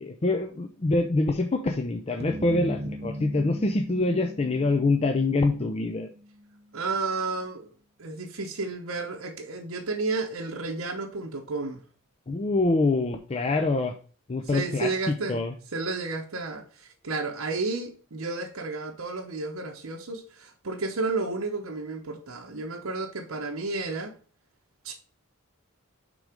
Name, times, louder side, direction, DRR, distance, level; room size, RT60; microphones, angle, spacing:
voice 1, 0.0-6.1 12.3-13.9 14.3-14.9 15.3-15.5, left 2 dB, 30° left, 0.5 m, -25 dB
sound 1, 2.2-6.6, equal, 30° right, 0.7 m, -38 dB
voice 2, 6.7-7.7 8.0-11.8 14.4-15.4 15.7-24.1 24.8-24.9, right 3 dB, 70° right, 0.9 m, -32 dB
6.3 x 3.8 x 4.9 m
head